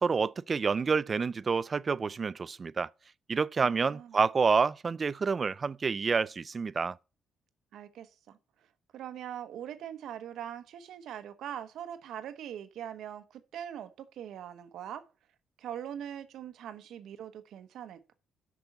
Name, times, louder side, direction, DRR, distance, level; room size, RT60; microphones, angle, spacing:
voice 1, 0.0-2.9 3.3-7.0, right 5 dB, 35° right, 0.4 m, -28 dB
voice 2, 3.6-4.2 7.7-8.4 8.9-15.1 15.6-18.1, right 10 dB, 75° right, 1.0 m, -42 dB
6.7 x 6.0 x 7.2 m
cardioid pair, 90°, 0 cm